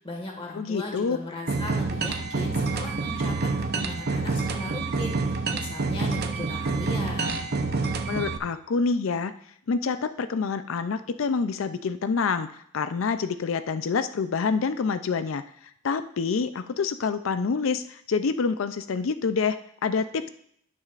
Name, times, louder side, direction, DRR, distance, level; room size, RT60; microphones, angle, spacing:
voice 1, 0.0-7.4, left 2 dB, 30° left, 0 dB, 1.8 m, -37 dB
voice 2, 0.5-1.2 8.1-9.3 9.7-15.4 15.8-20.3, left 5 dB, 80° left, 11 dB, 0.5 m, -27 dB
sound 1, 1.5-8.4, right 3 dB, 55° right, 0.7 m, -27 dB
18.0 x 6.3 x 2.5 m, 0.69 s
head